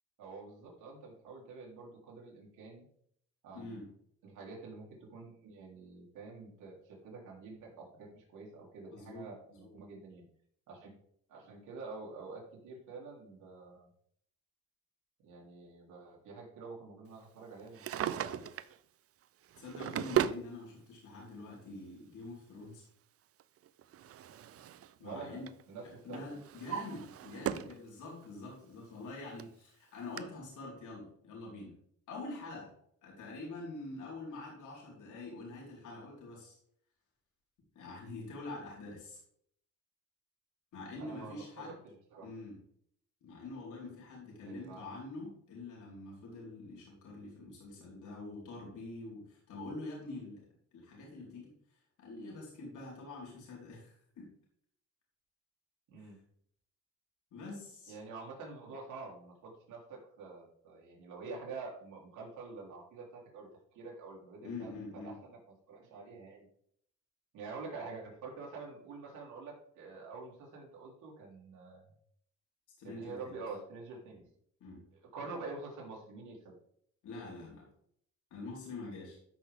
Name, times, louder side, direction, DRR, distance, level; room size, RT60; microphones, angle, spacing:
voice 1, 0.2-2.9 3.4-3.8 4.2-10.3 10.7-11.0 11.3-13.9 15.2-18.5 25.0-26.3 41.0-42.3 44.4-44.9 55.9-56.2 57.9-65.4 65.7-66.5 67.3-71.8 72.8-74.3 75.1-76.5, right 4 dB, 80° right, -3 dB, 3.2 m, -47 dB
voice 2, 3.5-3.9 8.9-9.7 19.6-22.8 25.0-25.4 26.0-31.8 32.1-32.7 33.0-36.6 37.7-39.2 40.7-41.8 42.2-42.6 43.2-50.4 50.7-51.5 52.0-54.3 56.0-56.1 57.3-57.9 64.4-65.1 72.8-73.4 74.6-74.8 77.0-77.7 78.3-79.2, left 2 dB, 80° left, -3 dB, 4.3 m, -45 dB
Drawer open or close, 17.6-18.8 19.5-20.5 21.5-21.6 23.4-24.9 25.2-25.6 26.1-27.8 28.2-28.3 29.1-29.2 29.4-29.5 30.2-30.3, right 10 dB, 50° right, 0.5 m, -36 dB
13.5 x 6.1 x 3.6 m, 0.67 s
cardioid pair, 90°, 30 cm